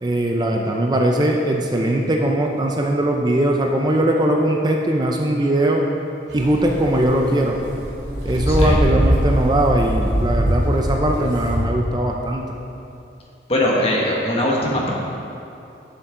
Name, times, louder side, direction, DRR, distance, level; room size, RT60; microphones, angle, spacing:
voice 1, 0.0-5.9 6.3-7.6 8.2-12.5, right 1 dB, 25° right, 1 dB, 0.5 m, -20 dB
sound 1, 6.3-11.6, equal, 80° right, 2.4 m, -22 dB
voice 2, 8.5-8.8 13.5-14.9, left 1 dB, 35° left, -3 dB, 1.5 m, -21 dB
11.5 x 7.3 x 3.8 m, 2.7 s
head